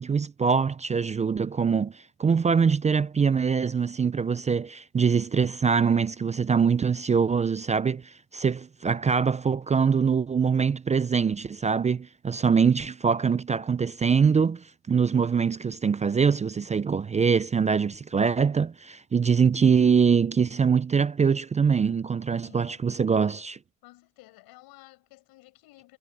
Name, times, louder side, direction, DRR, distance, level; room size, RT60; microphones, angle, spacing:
voice 1, 0.0-23.6, right 6 dB, 20° right, 0.4 m, -23 dB
voice 2, 22.4-22.8 23.8-26.0, left 19 dB, 85° left, 6.5 m, -53 dB
cardioid pair, 105°, 36 cm